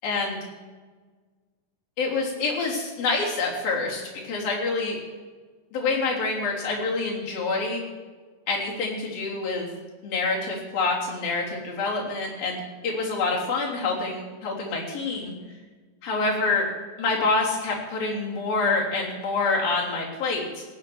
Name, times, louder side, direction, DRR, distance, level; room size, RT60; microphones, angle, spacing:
voice 1, 0.0-0.4 2.0-5.0 5.7-7.8 8.5-9.7 10.0-12.6 12.8-15.3 16.0-16.7 17.0-20.6, left 3 dB, 55° left, -2 dB, 4.9 m, -26 dB
17.5 x 8.1 x 7.9 m, 1.4 s
omnidirectional pair, 5.0 m